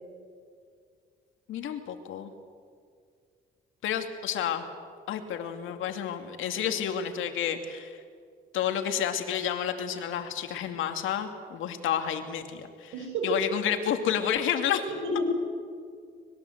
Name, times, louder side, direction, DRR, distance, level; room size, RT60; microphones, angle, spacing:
voice 1, 1.5-2.3 3.8-4.7 5.1-8.0 8.5-12.9 13.2-14.8, left 9 dB, 85° left, 6 dB, 2.5 m, -30 dB
voice 2, 12.9-13.4 14.9-15.3, right 1 dB, 85° right, 2 dB, 6.3 m, -30 dB
25.0 x 21.5 x 8.0 m, 2.1 s
cardioid pair, 90°, 20 cm